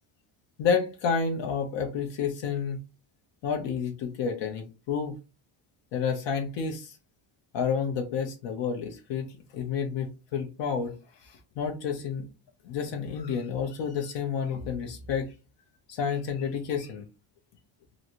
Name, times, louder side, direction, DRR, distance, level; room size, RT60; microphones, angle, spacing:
voice 1, 0.6-2.8 3.4-5.2 5.9-7.0 7.5-12.3 12.6-15.3 15.9-17.1, left 6 dB, 60° left, 0.7 m, -30 dB
3.0 x 2.6 x 2.9 m
cardioid pair, 160°, 49 cm